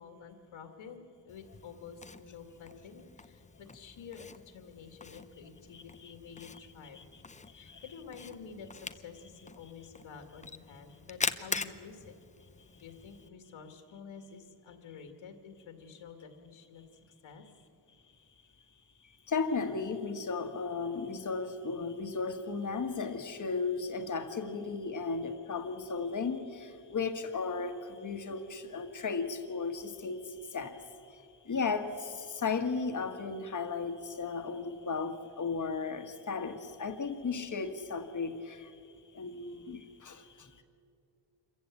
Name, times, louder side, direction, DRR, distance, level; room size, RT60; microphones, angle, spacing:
voice 1, 0.0-7.1 7.5-12.1 12.8-16.8 17.2-17.4 31.1-31.2, left 6 dB, 70° left, 6 dB, 2.1 m, -50 dB
Camera, 1.3-13.3, left 4 dB, 15° left, 0.6 m, -43 dB
voice 2, 5.7-6.1 6.9-7.0 7.5-7.8 19.3-30.2 30.5-30.8 31.5-38.7 39.1-40.5, left 4 dB, 35° left, 7 dB, 1.6 m, -35 dB
27.0 x 15.0 x 8.4 m, 2.5 s
wide cardioid pair, 150°, 49 cm